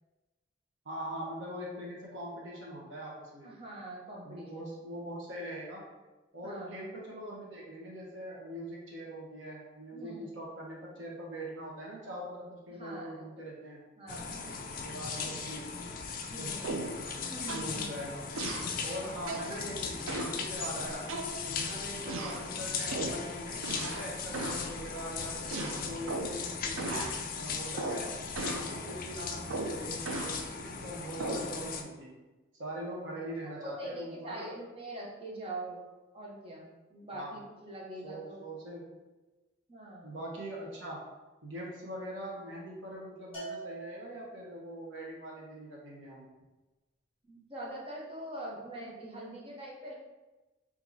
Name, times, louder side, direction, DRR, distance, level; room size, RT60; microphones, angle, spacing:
voice 1, 0.8-3.5 4.2-5.8 6.3-13.9 14.7-15.8 16.4-17.0 17.5-18.2 18.8-21.1 21.5-28.2 28.5-32.1 32.5-34.5 37.1-37.4 38.0-38.9 40.0-41.1 41.4-46.3, right 1 dB, 75° right, -3 dB, 1.1 m, -42 dB
voice 2, 3.4-4.7 6.4-6.7 9.9-10.3 12.8-13.4 14.0-14.4 16.3-16.7 17.3-17.8 18.7-19.1 33.6-35.8 36.1-38.4 39.7-40.2 47.2-49.9, right 1 dB, 25° right, -3 dB, 0.8 m, -43 dB
sound 1, 14.1-31.8, left 5 dB, 45° left, 0.3 m, -38 dB
sound 2, 16.6-17.0 17.5-17.7 18.4-18.7 19.3-19.5 20.1-20.4 21.1-21.6 22.1-22.4 22.9-23.2 23.6-24.1 24.3-24.7 25.5-26.4 26.8-27.2 27.8-28.1 28.4-28.7 29.5-30.4 31.2-31.5, right 2 dB, 90° right, 0.5 m, -36 dB
Bell, 43.3-44.7, right 3 dB, 30° left, 1.2 m, -44 dB
4.8 x 2.8 x 2.7 m, 1.1 s
head